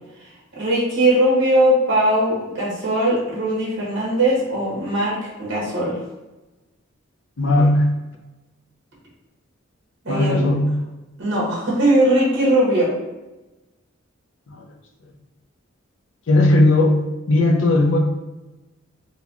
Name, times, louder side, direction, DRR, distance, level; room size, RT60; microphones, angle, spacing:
voice 1, 0.5-6.0 10.0-10.5 11.2-13.0, right 1 dB, 60° right, -5 dB, 1.5 m, -19 dB
voice 2, 7.4-7.9 10.1-10.7 14.5-14.6 16.3-17.0 17.3-18.0, left 2 dB, 70° left, 2 dB, 0.6 m, -16 dB
4.1 x 2.3 x 2.9 m, 1.1 s
head